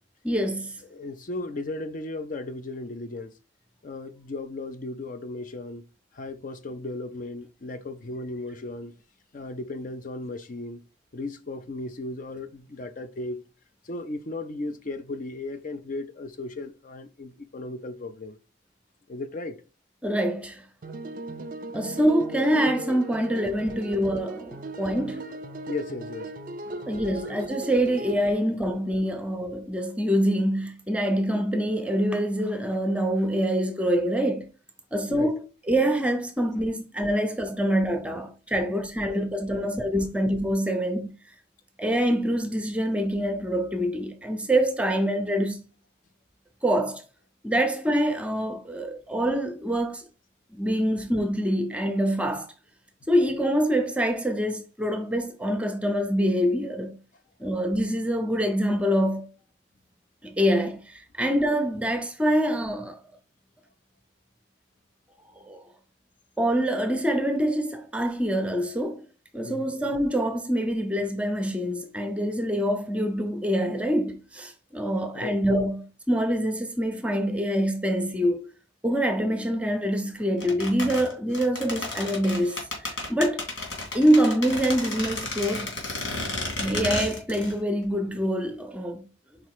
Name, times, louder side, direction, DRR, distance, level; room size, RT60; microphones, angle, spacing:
voice 1, 0.2-0.8 20.0-20.6 21.7-25.2 26.9-34.5 34.9-41.1 41.8-45.6 46.6-47.0 47.4-50.0 50.5-52.5 53.1-57.0 57.4-59.3 60.2-63.0 65.4-65.6 66.4-69.1 69.3-78.5 78.8-83.5 83.9-85.7 86.6-89.1, equal, 5° right, 0.7 m, -25 dB
voice 2, 0.8-3.3 3.8-5.8 6.1-8.9 9.3-10.8 11.1-13.4 13.8-18.4 19.1-19.6 21.7-21.8 25.7-26.3 26.6-26.9 29.1-29.2 35.1-35.3 37.1-37.2 37.6-37.7 38.5-38.7 39.0-39.2 39.5-39.6 69.4-69.7 75.1-75.4, left 2 dB, 40° left, 0.4 m, -36 dB
sound 1, 20.8-28.2, right 2 dB, 45° right, 0.4 m, -38 dB
sound 2, 80.4-87.6 87.8-87.9, left 2 dB, 80° left, 2.7 m, -32 dB
4.9 x 4.2 x 4.7 m
head